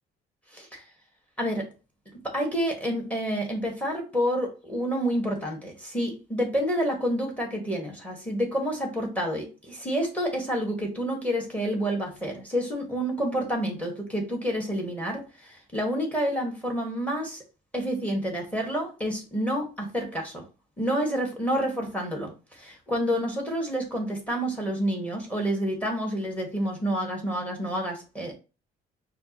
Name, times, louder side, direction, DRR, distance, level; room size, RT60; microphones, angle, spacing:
voice 1, 0.5-0.8 1.4-1.7 2.2-17.4 17.7-20.4 20.8-28.3, equal, 10° left, 2 dB, 1.6 m, -29 dB
5.7 x 2.6 x 3.0 m, 0.31 s
cardioid pair, 110°, 17 cm